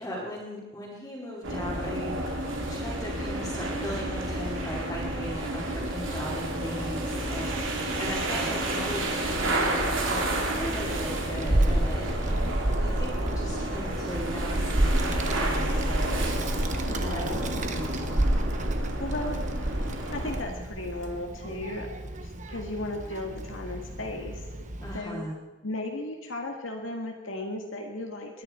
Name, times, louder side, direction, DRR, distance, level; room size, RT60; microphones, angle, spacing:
voice 1, 0.0-12.4 12.8-16.3 17.0-18.2 24.8-25.3, equal, 15° left, -7 dB, 2.7 m, -38 dB
sound 1, 1.4-20.4, right 1 dB, 75° right, 2.8 m, -31 dB
Child speech kid speaking, 10.5-25.0, right 1 dB, 35° right, 1.1 m, -30 dB
voice 2, 12.0-12.6 16.9-17.4 19.0-19.5 20.1-24.4 24.9-25.2 25.6-28.4, left 2 dB, 80° left, 2 dB, 1.9 m, -36 dB
21.0 x 10.5 x 4.4 m, 1.1 s
head